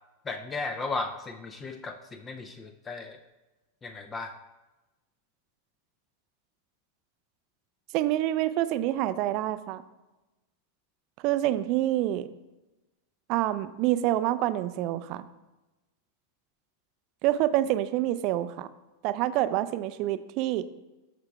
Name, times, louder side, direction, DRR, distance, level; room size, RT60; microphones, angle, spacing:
voice 1, 0.3-3.2 3.8-4.3, left 3 dB, 20° left, 7 dB, 0.5 m, -35 dB
voice 2, 7.9-9.8 11.2-12.3 13.3-15.2 17.2-18.7 19.0-20.6, right 14 dB, 40° right, 13 dB, 0.4 m, -27 dB
11.0 x 6.7 x 2.3 m, 1.1 s
figure-of-eight pair, 90°, 0 cm